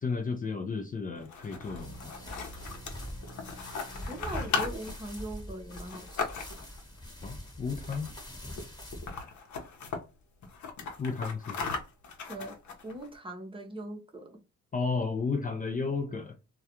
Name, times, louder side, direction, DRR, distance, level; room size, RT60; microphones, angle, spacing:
voice 1, 0.0-2.3 7.2-8.1 11.0-11.7 14.7-16.3, left 4 dB, 30° left, 0.5 m, -33 dB
sound 1, 1.2-6.8 7.8-8.3 8.6-8.7 8.9-10.0 10.4-13.1, left 5 dB, 70° left, 0.8 m, -37 dB
sound 2, 1.5-5.3, right 2 dB, 75° right, 0.8 m, -50 dB
sound 3, 1.8-9.1, left 1 dB, 15° left, 1.1 m, -43 dB
voice 2, 4.1-6.3 12.3-12.5 12.8-14.4, right 1 dB, 15° right, 0.7 m, -40 dB
2.3 x 2.2 x 2.8 m
cardioid pair, 90°, 30 cm